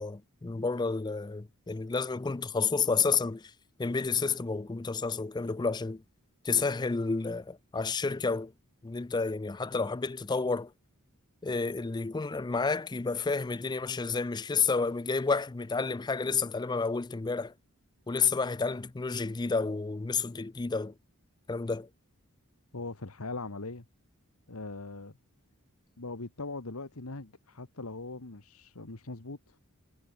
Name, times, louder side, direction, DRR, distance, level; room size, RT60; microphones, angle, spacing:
voice 1, 0.0-3.5 3.8-6.0 6.4-8.5 8.8-10.7 11.4-17.5 18.1-20.9 21.5-21.9, left 4 dB, 20° left, 0.4 m, -30 dB
voice 2, 22.7-23.8 24.5-25.2 26.0-29.6, left 3 dB, 75° left, 1.6 m, -40 dB
head